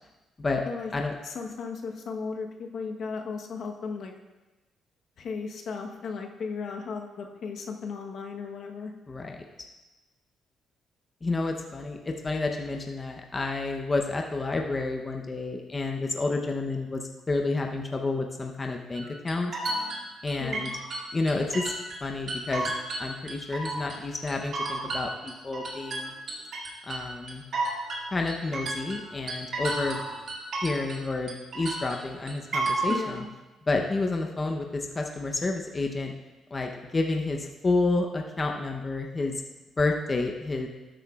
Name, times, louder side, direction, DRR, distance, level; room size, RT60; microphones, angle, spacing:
voice 1, 1.2-4.1 5.2-8.9 20.4-20.7 32.9-33.3, left 5 dB, 65° left, 2 dB, 1.1 m, -35 dB
voice 2, 9.1-9.4 11.2-19.5 20.2-20.7 21.1-21.7 22.0-22.7 23.0-26.1 26.8-27.4 28.1-30.0 30.6-33.2 33.7-36.1 36.5-39.4 39.8-40.7, left 3 dB, 30° left, 2 dB, 0.8 m, -30 dB
sound 1, 18.9-22.0 22.3-24.0 24.3-31.0 31.3-33.0, right 2 dB, 60° right, 2.2 m, -32 dB
12.0 x 9.0 x 2.4 m, 1.1 s
cardioid pair, 90°, 0 cm